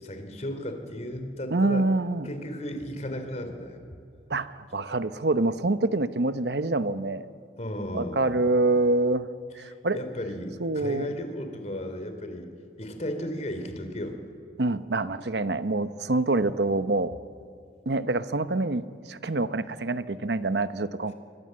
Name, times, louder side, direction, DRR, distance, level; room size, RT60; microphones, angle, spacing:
voice 1, 0.0-1.8 2.2-3.8 7.6-8.4 9.7-12.5 12.8-14.2, equal, 40° left, 7 dB, 3.1 m, -34 dB
voice 2, 1.5-2.3 4.3-7.3 7.9-9.3 9.6-10.0 10.6-11.1 14.6-17.1 17.9-21.1, right 2 dB, 70° right, 12 dB, 0.9 m, -26 dB
28.0 x 23.5 x 7.7 m, 2.4 s
head